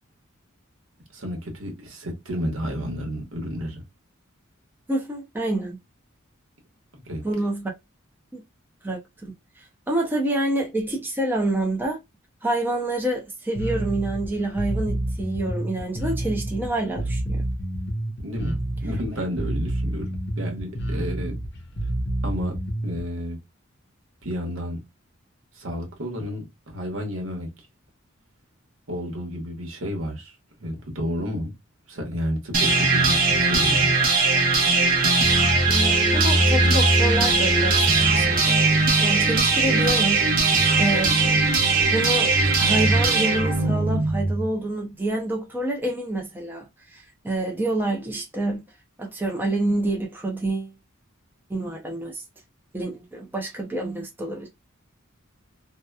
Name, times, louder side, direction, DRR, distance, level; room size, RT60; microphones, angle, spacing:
voice 1, 1.1-3.8 6.9-7.2 18.2-21.4 22.2-22.5 22.8-23.4 24.2-24.8 25.5-27.5 28.9-31.5 31.9-33.9, equal, 75° right, 1.0 m, -31 dB
voice 2, 4.9-5.8 7.2-7.7 8.3-8.4 8.8-12.0 12.4-17.4 35.7-38.6 39.0-40.3 40.8-41.2 41.9-42.3 42.6-48.6 49.0-50.7 51.5-52.2 52.7-54.5, right 1 dB, 10° right, 0.5 m, -27 dB
Bass guitar, 13.5-23.0, right 1 dB, 55° left, 0.6 m, -29 dB
sound 1, 32.5-44.5, right 3 dB, 45° right, 0.8 m, -19 dB
2.8 x 2.1 x 2.2 m
head